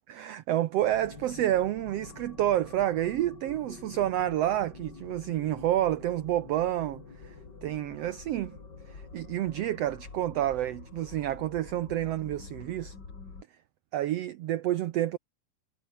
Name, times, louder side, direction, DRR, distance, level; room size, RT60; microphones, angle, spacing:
voice 1, 0.1-7.3 7.6-8.6 8.9-12.9 13.9-15.2, right 13 dB, 85° right, 1.4 m, -29 dB
sound 1, 0.8-13.4, left 4 dB, 30° left, 3.6 m, -47 dB
omnidirectional pair, 3.9 m